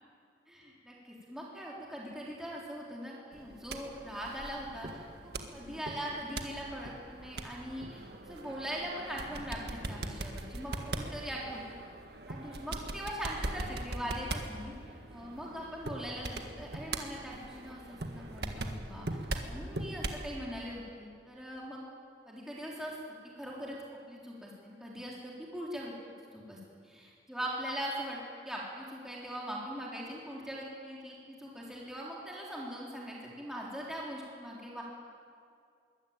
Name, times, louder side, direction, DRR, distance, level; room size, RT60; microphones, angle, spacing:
voice 1, 0.5-11.8 12.3-14.7 15.1-21.8 22.3-23.8 24.1-25.9 26.3-26.6 26.8-28.2 28.5-34.8, equal, 5° right, -4 dB, 3.7 m, -41 dB
sound 1, 3.3-20.3, right 2 dB, 70° right, 1.8 m, -41 dB
23.0 x 16.0 x 9.0 m, 2.3 s
head